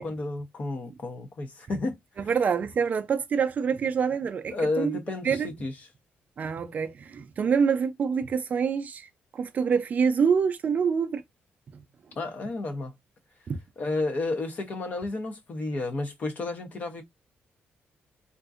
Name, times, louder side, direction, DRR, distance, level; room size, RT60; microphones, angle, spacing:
voice 1, 0.0-2.0 4.5-5.7 12.2-12.9 13.8-17.0, left 2 dB, 40° left, 0.7 m, -31 dB
voice 2, 2.2-5.0 5.2-5.5 6.4-11.2 13.5-13.6, right 6 dB, 40° right, 0.4 m, -26 dB
3.6 x 2.5 x 2.4 m
wide cardioid pair, 175°, 4 cm